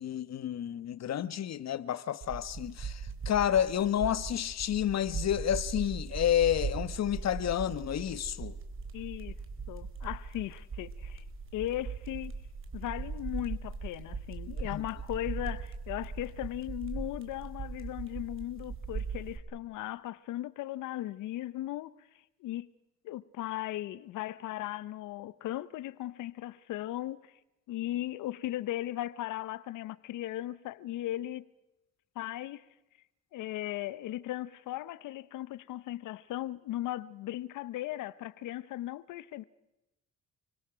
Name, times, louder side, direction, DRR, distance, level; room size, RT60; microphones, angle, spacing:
voice 1, 0.0-8.6 14.7-14.8, left 10 dB, 60° left, 1.3 m, -30 dB
sound 1, 2.2-19.4, right 5 dB, 45° right, 4.3 m, -39 dB
voice 2, 8.9-9.4 9.7-11.2 11.5-12.3 12.7-21.9 22.4-22.7 23.0-27.3 27.7-31.4 32.2-32.6 33.3-39.4, left 14 dB, 85° left, 0.9 m, -37 dB
29.5 x 23.0 x 6.2 m
cardioid pair, 90°, 30 cm